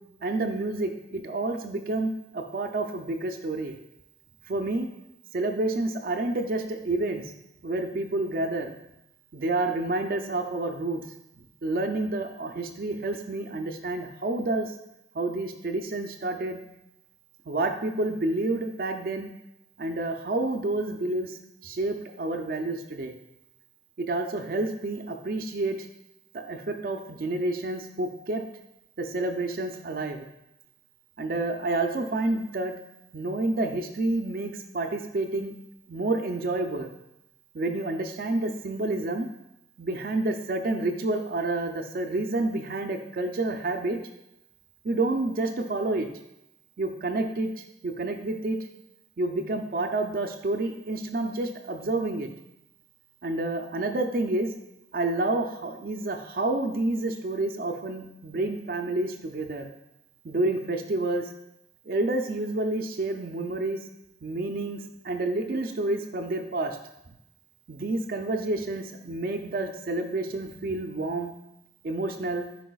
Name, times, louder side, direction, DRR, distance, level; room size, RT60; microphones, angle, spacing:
voice 1, 0.2-3.8 4.5-4.9 5.3-7.3 7.6-8.7 9.3-11.0 11.6-14.7 15.1-16.6 17.5-19.3 19.8-23.2 24.0-25.9 26.3-28.4 29.0-30.3 31.2-32.7 33.1-35.5 35.9-36.9 37.5-39.3 39.8-44.0 44.8-46.1 46.8-47.5 47.8-48.6 49.2-52.3 53.2-54.5 54.9-59.7 60.2-61.3 61.9-63.8 64.2-64.8 65.0-66.8 67.7-71.3 71.8-72.5, right 2 dB, 55° right, 4 dB, 0.4 m, -29 dB
10.0 x 4.7 x 2.3 m, 0.89 s
head